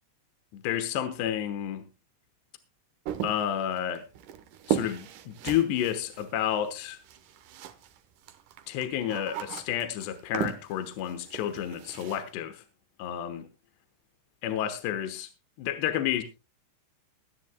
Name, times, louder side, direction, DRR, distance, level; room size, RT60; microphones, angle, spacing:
voice 1, 0.5-1.9 3.2-4.0 4.7-7.0 8.7-12.6 13.0-13.5 14.4-15.3 15.6-16.2, left 10 dB, 75° left, 3.2 m, -30 dB
sound 1, 3.1-8.0 8.2-12.2, right 10 dB, 80° right, 1.9 m, -36 dB
23.0 x 9.7 x 2.2 m
omnidirectional pair, 5.1 m